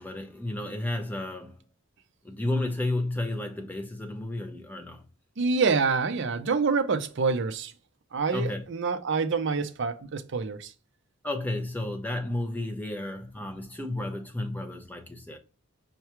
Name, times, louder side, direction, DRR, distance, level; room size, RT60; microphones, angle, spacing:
voice 1, 0.0-1.6 2.2-5.0 8.3-8.6 11.2-15.4, left 1 dB, 10° left, 0.6 m, -32 dB
voice 2, 5.4-7.7 8.1-10.7, right 4 dB, 55° right, 0.5 m, -26 dB
5.6 x 2.2 x 2.9 m
head